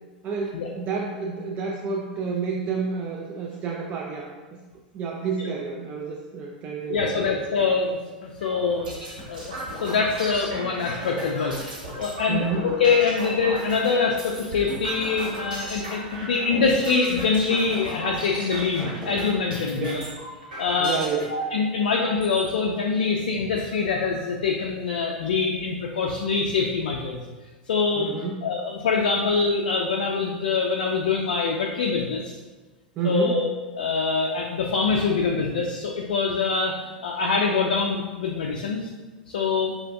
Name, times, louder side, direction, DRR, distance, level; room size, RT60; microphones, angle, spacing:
voice 1, 0.2-4.6 4.9-7.3 7.6-7.7 12.3-12.7 19.8-20.0 20.8-21.3 28.0-28.5 33.0-33.4, right 5 dB, 35° right, 0 dB, 0.3 m, -29 dB
voice 2, 6.9-8.9 9.3-20.0 20.6-21.0 21.3-27.2 27.7-28.1 28.4-32.3 33.0-33.5 33.8-38.9 39.3-39.7, left 4 dB, 65° left, 0 dB, 0.3 m, -24 dB
sound 1, 8.4-21.2 21.9-22.5 23.0-23.1 23.4-24.1, right 1 dB, 75° right, 1.3 m, -36 dB
4.8 x 2.4 x 2.2 m, 1.3 s
figure-of-eight pair, 85°, 5 cm